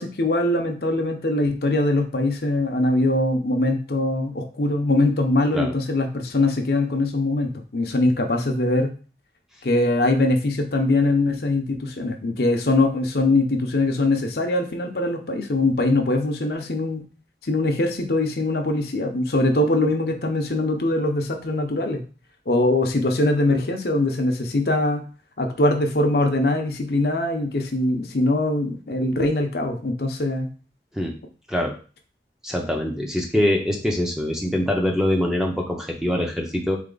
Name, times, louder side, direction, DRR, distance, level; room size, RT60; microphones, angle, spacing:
voice 1, 0.0-8.9 9.6-17.0 17.4-22.0 22.5-25.0 25.4-30.5, left 2 dB, 60° left, 3 dB, 0.7 m, -22 dB
voice 2, 32.4-36.8, left 1 dB, 5° right, 0 dB, 0.6 m, -23 dB
4.0 x 3.3 x 3.9 m, 0.37 s
head